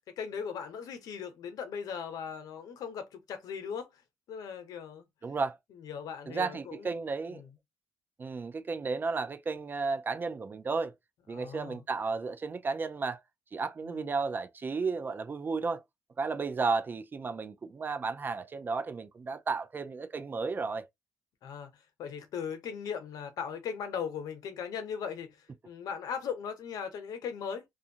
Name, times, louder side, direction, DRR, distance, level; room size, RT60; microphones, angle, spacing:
voice 1, 0.2-4.0 4.3-5.1 5.7-6.9 7.3-7.5 11.3-11.8 13.8-14.1 21.4-27.6, left 7 dB, 80° left, 0.8 m, -38 dB
voice 2, 5.2-5.6 6.3-7.4 8.2-10.9 11.3-13.2 13.5-15.8 16.2-20.9, right 4 dB, 30° right, 0.4 m, -33 dB
2.6 x 2.4 x 2.7 m
cardioid pair, 105°, 6 cm